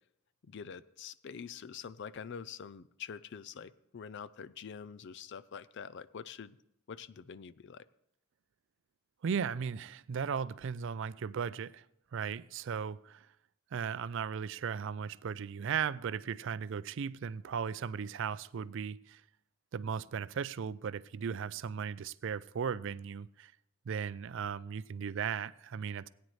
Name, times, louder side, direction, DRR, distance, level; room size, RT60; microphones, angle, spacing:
voice 1, 0.4-6.6 6.9-7.9, left 7 dB, 55° left, 0.4 m, -45 dB
voice 2, 9.2-11.8 12.1-13.3 13.7-19.2 19.7-23.5 23.9-26.1, right 7 dB, 60° right, 0.4 m, -36 dB
17.5 x 9.3 x 3.2 m
head